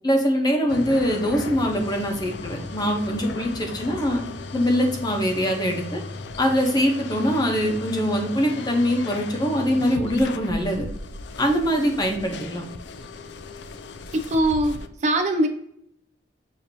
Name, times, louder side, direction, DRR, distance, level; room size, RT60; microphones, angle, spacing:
voice 1, 0.0-4.2 4.5-6.0 6.4-10.9 11.4-12.6, equal, 25° left, 2 dB, 0.9 m, -23 dB
sound 1, 0.7-14.9, left 3 dB, 70° left, 0.4 m, -36 dB
voice 2, 14.1-14.8 15.0-15.5, right 1 dB, 40° right, 5 dB, 0.4 m, -21 dB
6.8 x 2.8 x 2.7 m, 0.72 s
head